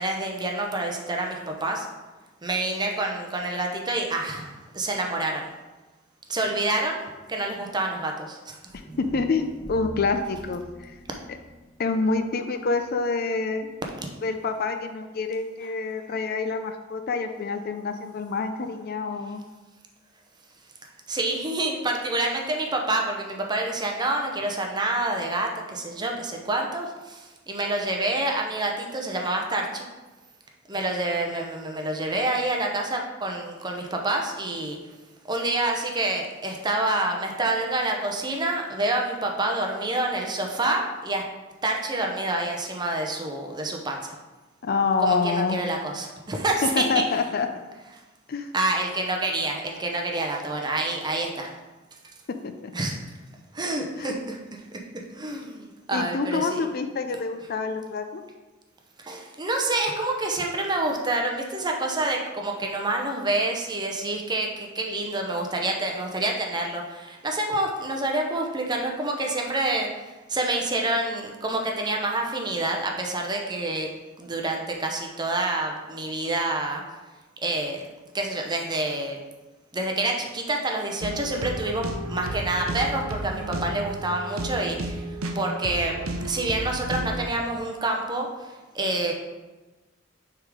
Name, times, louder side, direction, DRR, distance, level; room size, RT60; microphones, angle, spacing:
voice 1, 0.0-1.9 2.4-5.5 6.3-8.6 14.0-14.1 21.1-29.9 30.7-34.8 35.3-41.3 41.6-44.2 45.0-46.8 48.5-51.6 52.7-53.0 53.5-56.7 59.0-73.9 74.2-76.8 77.4-77.8 78.1-79.2 79.7-81.8 82.1-89.1, right 2 dB, 20° right, 1 dB, 0.7 m, -27 dB
voice 2, 8.7-11.0 11.8-13.7 14.2-19.4 44.6-45.6 46.6-47.5 48.3-48.5 52.4-52.7 54.0-54.1 55.9-58.2, left 4 dB, 50° left, 8 dB, 0.4 m, -27 dB
sound 1, 8.7-12.9, right 1 dB, 5° left, 1.7 m, -43 dB
sound 2, 81.0-87.3, right 1 dB, 90° right, 0.7 m, -32 dB
6.6 x 3.7 x 4.8 m, 1.2 s
head